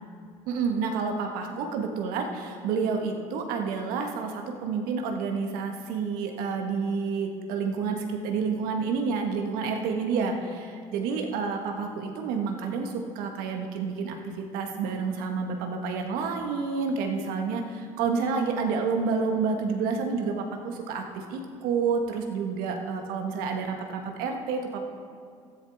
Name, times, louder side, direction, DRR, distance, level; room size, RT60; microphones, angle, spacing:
voice 1, 0.5-24.8, right 5 dB, 70° right, 3 dB, 1.4 m, -29 dB
13.5 x 13.0 x 3.6 m, 2.3 s
hypercardioid pair, 65°, 16 cm